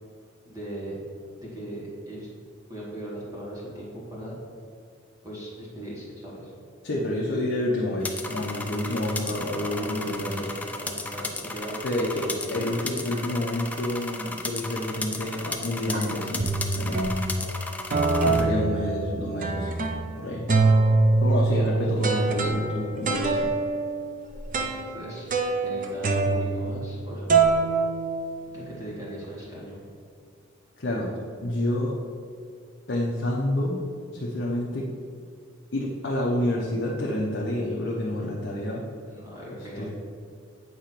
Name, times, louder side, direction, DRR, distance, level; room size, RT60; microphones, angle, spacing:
voice 1, 0.4-1.0 1.5-2.3 2.7-4.3 5.2-6.5 9.5-12.6 24.6-25.3 25.6-27.5 28.5-29.8 39.0-39.9, equal, 15° right, -6 dB, 1.5 m, -39 dB
voice 2, 6.8-10.3 11.8-17.0 18.2-19.7 20.2-20.5 21.2-23.5 30.8-31.1 31.4-32.0 32.9-33.8 34.1-34.9 35.7-38.8 39.8-39.9, left 1 dB, 60° left, -3 dB, 0.8 m, -28 dB
sound 1, 8.0-18.4, left 2 dB, 5° left, 0.3 m, -35 dB
sound 2, 14.9-15.3 15.9-16.0 16.4-17.5 17.9-20.2 20.5-27.0 27.3-28.7, right 3 dB, 40° right, 0.5 m, -24 dB
8.3 x 2.9 x 5.9 m, 2.2 s
head